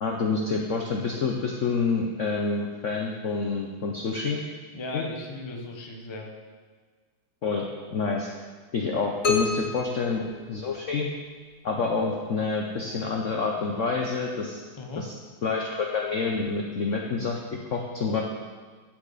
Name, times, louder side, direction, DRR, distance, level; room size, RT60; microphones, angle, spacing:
voice 1, 0.0-4.4 4.9-5.0 7.4-7.7 7.9-8.3 8.7-10.2 10.5-11.1 11.6-14.6 15.0-15.1 15.4-17.4 17.7-18.2, left 4 dB, 80° left, 0 dB, 0.6 m, -27 dB
voice 2, 4.7-6.3 14.8-15.1 18.0-18.2, left 2 dB, 30° left, 2 dB, 0.4 m, -37 dB
sound 1, 9.2-11.2, left 4 dB, 45° left, 1.2 m, -29 dB
14.0 x 6.0 x 4.1 m, 1.5 s
omnidirectional pair, 2.4 m